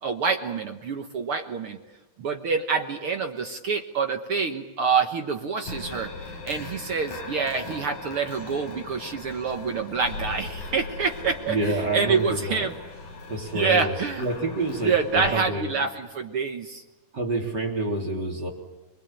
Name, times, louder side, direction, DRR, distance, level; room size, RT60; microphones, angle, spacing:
voice 1, 0.0-1.8 2.2-12.7 13.5-14.2 14.8-16.8, right 5 dB, 60° right, 5 dB, 1.4 m, -27 dB
sound 1, 5.6-15.3, left 3 dB, 75° left, 7.3 m, -39 dB
voice 2, 11.5-12.7 13.3-15.7 17.1-18.5, right 2 dB, 30° right, 1 dB, 3.7 m, -28 dB
26.5 x 21.5 x 9.0 m, 1.1 s
omnidirectional pair, 4.2 m